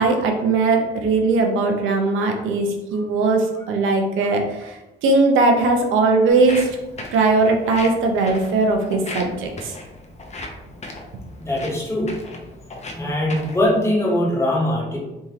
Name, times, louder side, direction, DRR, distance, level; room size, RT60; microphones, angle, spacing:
voice 1, 0.0-6.7 7.1-9.7, right 3 dB, 85° right, 3 dB, 0.6 m, -19 dB
Walk footsteps, 6.3-13.7, left 2 dB, 35° left, 0.6 m, -37 dB
voice 2, 11.4-12.2 12.9-15.0, left 1 dB, 15° left, -4 dB, 1.1 m, -21 dB
3.5 x 2.8 x 2.9 m, 1.0 s
cardioid pair, 90°, 20 cm